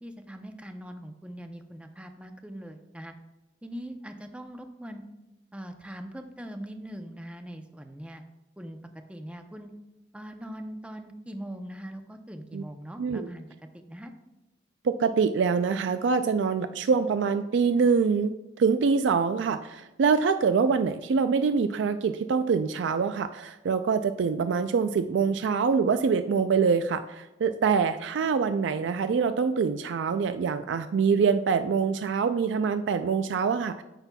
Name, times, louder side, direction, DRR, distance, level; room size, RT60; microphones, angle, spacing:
voice 1, 0.0-3.1 3.6-5.0 5.5-8.2 8.6-8.8 9.1-9.7 10.1-13.5 13.7-14.1, equal, 5° right, 6 dB, 0.5 m, -41 dB
voice 2, 14.8-33.8, right 5 dB, 80° right, 10 dB, 0.3 m, -25 dB
14.5 x 5.7 x 2.3 m, 1.0 s
head